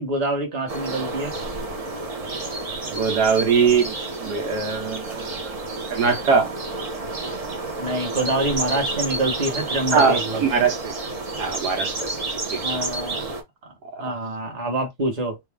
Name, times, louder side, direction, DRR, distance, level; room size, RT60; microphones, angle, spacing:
voice 1, 0.0-1.3 7.8-10.7 12.6-13.4 14.0-15.4, right 2 dB, 30° right, 1.1 m, -26 dB
sound 1, 0.7-13.4, right 2 dB, 45° right, 0.4 m, -30 dB
voice 2, 2.9-4.0 4.2-5.6 5.9-6.5 9.9-11.0 11.4-12.6 13.9-14.1, right 5 dB, 80° right, 1.5 m, -22 dB
3.0 x 2.5 x 3.5 m
omnidirectional pair, 1.7 m